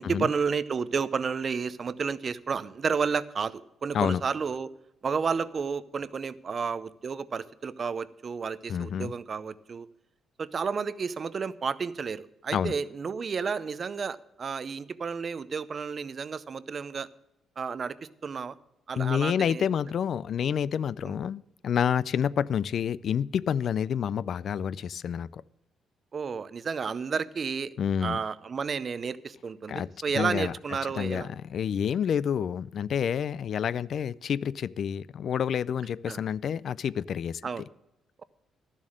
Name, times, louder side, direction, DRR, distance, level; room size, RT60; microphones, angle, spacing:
voice 1, 0.0-4.7 5.0-9.9 10.4-17.1 17.6-18.5 18.9-19.7 21.0-21.1 26.1-27.7 28.0-31.3 36.1-36.2 37.4-37.6, right 5 dB, 45° right, 0.5 m, -31 dB
voice 2, 8.7-9.1 12.5-12.7 19.0-25.4 27.8-28.2 29.7-30.5 30.9-37.4, left 8 dB, 60° left, 0.3 m, -28 dB
12.5 x 7.3 x 6.3 m
cardioid pair, 90°, 0 cm